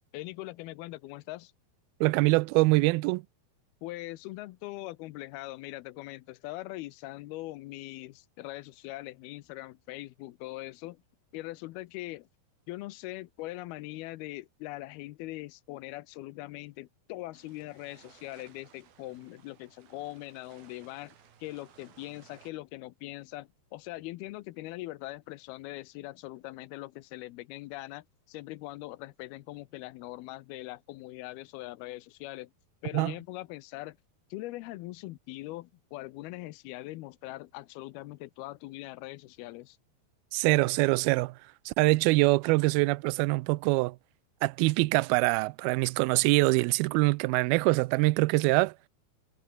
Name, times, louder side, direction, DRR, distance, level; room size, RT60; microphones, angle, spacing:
voice 1, 0.1-1.5 3.8-11.0 11.3-12.3 12.7-21.2 21.4-32.5 32.8-34.0 34.3-39.8, left 18 dB, 80° left, 2.6 m, -41 dB
voice 2, 2.0-3.2 32.9-33.1 40.3-41.4 41.7-44.0 44.4-48.7, right 23 dB, 80° right, 2.3 m, -24 dB
sound 1, 17.3-22.5, right 8 dB, 65° right, 4.4 m, -59 dB
omnidirectional pair, 4.7 m